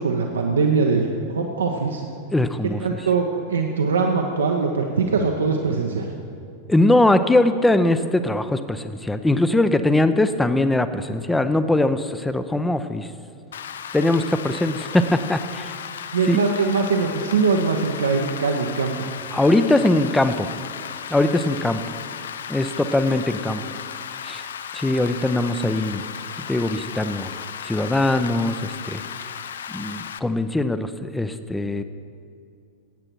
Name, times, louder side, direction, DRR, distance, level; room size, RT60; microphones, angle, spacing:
voice 1, 0.0-2.0 2.8-6.1 16.1-19.0, right 4 dB, 70° right, 2 dB, 0.8 m, -22 dB
voice 2, 2.3-2.8 6.7-13.1 13.9-15.8 16.3-16.4 19.3-20.5 21.1-21.8 22.5-23.6 24.2-24.4 24.7-26.0 26.4-27.3 27.6-29.0 29.7-31.8, left 2 dB, 5° left, 11 dB, 0.6 m, -21 dB
Rain, 13.5-30.2, left 8 dB, 65° left, 0.4 m, -35 dB
16.5 x 8.8 x 4.6 m, 2.5 s
figure-of-eight pair, 90°, 0 cm